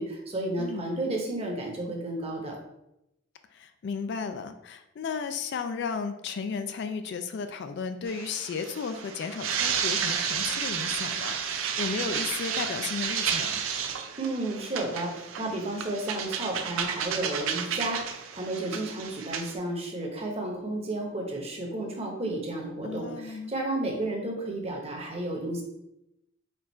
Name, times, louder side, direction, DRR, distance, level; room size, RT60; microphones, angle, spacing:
voice 1, 0.0-2.6 14.2-25.6, right 1 dB, 30° right, 0 dB, 0.8 m, -32 dB
voice 2, 3.5-13.6 22.8-23.5, left 5 dB, 55° left, 9 dB, 0.3 m, -34 dB
sound 1, 8.1-19.5, right 7 dB, 80° right, 0.5 m, -32 dB
4.4 x 2.4 x 4.3 m, 0.84 s
head